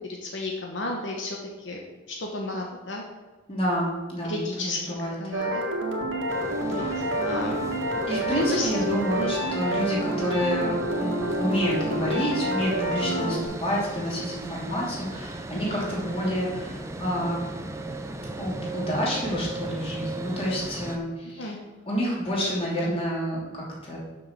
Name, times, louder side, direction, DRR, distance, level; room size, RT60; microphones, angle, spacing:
voice 1, 0.2-1.4 1.6-1.8 2.2-3.0 4.3-4.8 5.2-5.6 6.6-6.8 7.2-7.6 8.3-8.7 9.1-9.4 15.5-15.8 21.4-21.6, left 2 dB, 70° left, 0 dB, 1.1 m, -32 dB
voice 2, 3.5-5.1 6.7-7.0 8.1-17.4 18.4-21.6 21.9-24.0, equal, 30° left, -4 dB, 2.8 m, -29 dB
sound 1, 5.3-13.4, right 1 dB, 85° right, 1.7 m, -28 dB
sound 2, 6.3-21.0, right 2 dB, 15° right, 0.6 m, -37 dB
6.5 x 6.4 x 7.2 m, 1.3 s
head